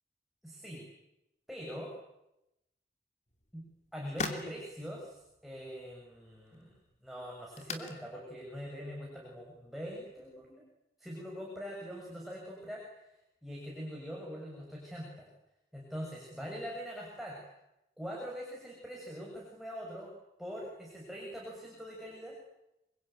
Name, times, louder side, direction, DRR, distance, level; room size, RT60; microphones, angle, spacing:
voice 1, 0.4-0.9 1.5-1.9 3.5-3.6 3.9-6.8 7.0-10.6 11.0-12.8 13.4-15.3 15.7-17.4 18.0-20.1 20.4-22.4, equal, ahead, -3 dB, 6.8 m, -43 dB
sound 1, 3.3-10.6, left 3 dB, 40° left, 3.0 m, -46 dB
27.5 x 23.5 x 9.2 m, 0.89 s
head